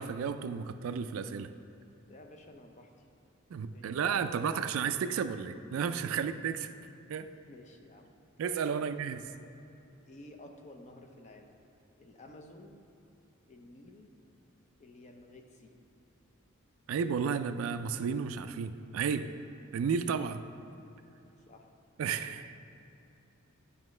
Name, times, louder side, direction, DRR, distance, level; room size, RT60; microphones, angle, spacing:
voice 1, 0.0-1.5 3.5-6.7 7.1-7.3 8.4-9.2 16.9-19.3 19.7-20.4 22.0-22.6, right 6 dB, 70° right, 11 dB, 0.3 m, -32 dB
voice 2, 2.1-2.9 3.7-4.0 7.5-8.1 8.8-8.9 10.1-11.5 12.0-12.8 13.5-14.1 14.8-15.7 21.5-21.7, left 1 dB, 35° left, 3 dB, 0.7 m, -52 dB
11.0 x 5.1 x 3.2 m, 2.9 s
head